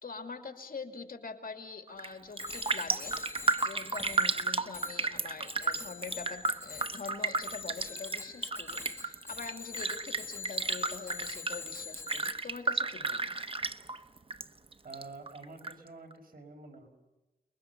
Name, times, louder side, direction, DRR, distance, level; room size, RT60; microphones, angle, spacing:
voice 1, 0.0-3.2 3.6-13.5, left 4 dB, 60° left, 6 dB, 2.7 m, -44 dB
Raindrop, 1.9-2.1 2.4-14.4 14.7-15.7 16.1-16.2, right 3 dB, 35° right, 1.0 m, -33 dB
Bicycle bell, 2.3-12.3, left 4 dB, 15° left, 2.5 m, -44 dB
voice 2, 14.8-16.9, right 3 dB, 65° right, 4 dB, 5.1 m, -48 dB
29.5 x 22.0 x 6.8 m, 1.0 s
wide cardioid pair, 100°, 16 cm